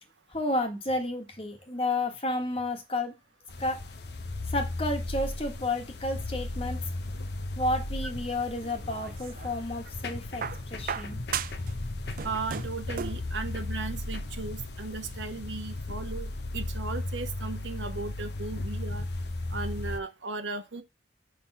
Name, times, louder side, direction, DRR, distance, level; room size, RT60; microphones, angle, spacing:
voice 1, 0.3-3.1 3.6-3.8 4.5-6.8 7.6-11.2, left 2 dB, 30° left, 1.5 m, -31 dB
sound 1, 3.5-20.0, left 2 dB, 60° left, 0.8 m, -35 dB
sound 2, 8.6-9.6 10.4-11.7 12.0-13.3 14.4-14.5, right 8 dB, 50° right, 0.3 m, -36 dB
voice 2, 12.2-19.0 19.5-20.8, right 3 dB, 80° right, 1.1 m, -36 dB
5.9 x 3.6 x 5.6 m
head